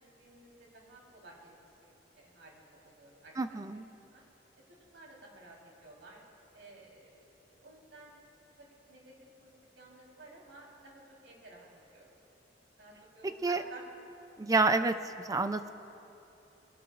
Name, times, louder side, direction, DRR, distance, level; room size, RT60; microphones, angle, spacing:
voice 1, 0.0-3.6 4.1-4.2 4.9-6.2 6.5-8.2 8.6-12.1 12.8-13.8, right 2 dB, 90° right, -3 dB, 3.9 m, -54 dB
voice 2, 3.4-3.9 13.4-13.6 14.4-15.7, right 3 dB, 20° right, 9 dB, 0.4 m, -29 dB
22.5 x 17.5 x 2.5 m, 2.8 s
head